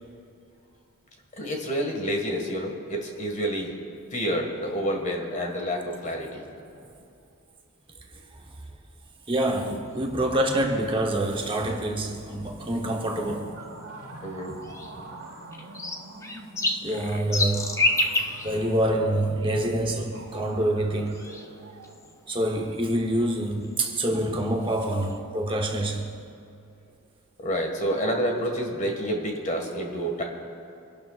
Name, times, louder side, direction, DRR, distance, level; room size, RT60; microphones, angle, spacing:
voice 1, 1.4-3.7 4.1-6.4 14.2-14.8 27.4-30.2, equal, 35° left, 1.9 m, -28 dB
voice 2, 9.3-13.5 16.8-17.8 18.4-21.3 22.3-26.1, right 1 dB, 25° right, 1.0 m, -26 dB
sound 1, 9.9-25.2, left 1 dB, 15° left, 0.6 m, -34 dB
sound 2, 10.9-21.9, right 2 dB, 65° right, 1.8 m, -45 dB
25.5 x 12.0 x 2.5 m
head